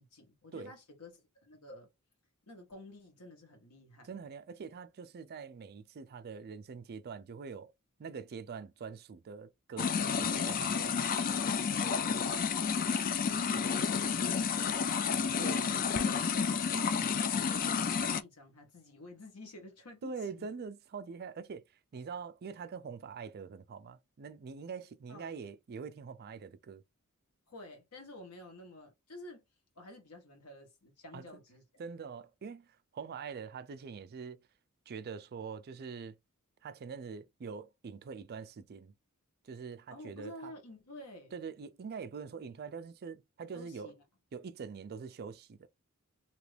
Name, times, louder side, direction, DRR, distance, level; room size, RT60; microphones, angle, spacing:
voice 1, 0.0-1.9 2.5-4.2 11.8-15.9 16.3-20.5 25.1-25.3 27.5-29.4 29.8-31.6 39.9-41.4 43.5-44.0, left 1 dB, 85° left, 1.3 m, -51 dB
voice 2, 4.0-7.7 8.0-10.9 15.4-15.8 20.0-21.6 21.9-26.8 31.1-31.3 31.8-32.7 32.9-34.4 34.9-36.2 36.6-38.9 39.5-40.5 41.3-43.9 44.3-45.7, right 5 dB, 45° right, 0.4 m, -44 dB
sound 1, 9.8-18.2, left 6 dB, 40° left, 0.3 m, -31 dB
2.9 x 2.5 x 3.2 m
head